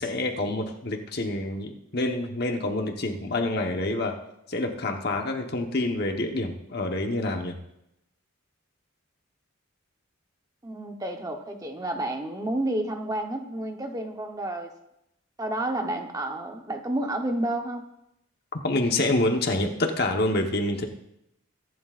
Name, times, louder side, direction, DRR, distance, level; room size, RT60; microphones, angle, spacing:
voice 1, 0.0-4.2 4.5-7.6 18.5-20.9, left 2 dB, 50° left, 3 dB, 1.2 m, -27 dB
voice 2, 10.6-14.7 15.4-17.8, right 1 dB, 15° right, 3 dB, 1.0 m, -30 dB
24.0 x 11.5 x 2.5 m, 0.83 s
head